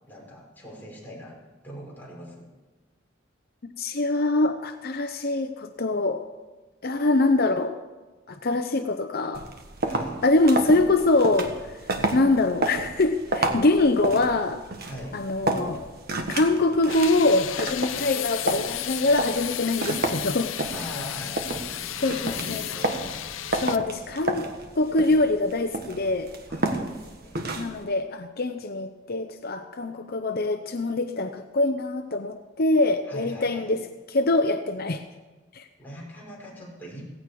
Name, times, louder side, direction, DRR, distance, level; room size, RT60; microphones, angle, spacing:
voice 1, 0.1-1.4 1.6-2.5 9.8-10.2 14.8-15.2 20.7-23.0 26.5-27.5 33.1-33.8 35.8-37.1, equal, 10° left, -4 dB, 5.3 m, -41 dB
voice 2, 3.8-6.2 6.8-7.8 8.3-9.5 10.2-11.8 12.1-14.6 15.1-15.9 16.3-20.6 22.0-22.6 23.6-24.5 24.7-26.3 27.6-33.8 34.1-35.0 35.5-35.7, left 2 dB, 50° left, 7 dB, 0.8 m, -24 dB
sound 1, 9.3-27.8, right 2 dB, 50° right, 1.5 m, -31 dB
sound 2, 16.9-23.8, left 12 dB, 80° left, 0.7 m, -33 dB
17.0 x 16.0 x 4.8 m, 1.2 s
head